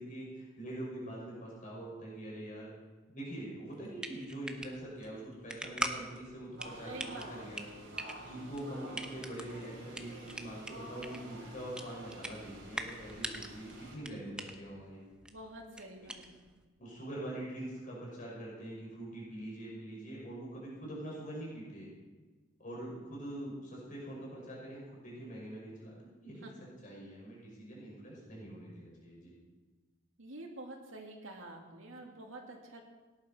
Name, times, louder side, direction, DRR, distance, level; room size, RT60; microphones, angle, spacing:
voice 1, 0.0-2.7 3.1-7.6 8.2-15.0 16.8-21.9 22.6-26.5 26.8-29.3, right 1 dB, 40° left, -4 dB, 5.8 m, -44 dB
sound 1, 3.7-16.6, right 1 dB, 5° right, 0.8 m, -44 dB
sound 2, 6.6-14.0, right 1 dB, 65° right, 3.6 m, -49 dB
voice 2, 6.8-7.5 14.1-14.2 15.3-16.4 26.4-26.5 30.2-32.8, right 2 dB, 80° right, 1 dB, 2.4 m, -48 dB
17.5 x 11.0 x 4.4 m, 1.3 s
head